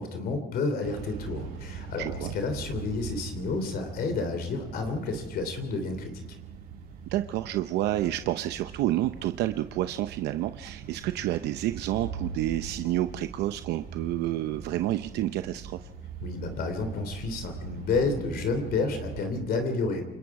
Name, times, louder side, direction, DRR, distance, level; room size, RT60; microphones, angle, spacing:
voice 1, 0.0-6.2 16.2-20.0, left 3 dB, 65° left, 7 dB, 3.2 m, -30 dB
sound 1, 0.8-19.3, right 6 dB, 65° right, 6.3 m, -41 dB
voice 2, 2.0-2.4 7.1-15.9, right 14 dB, 80° right, 9 dB, 0.7 m, -29 dB
29.0 x 20.0 x 4.8 m, 1.1 s
cardioid pair, 110°, 17 cm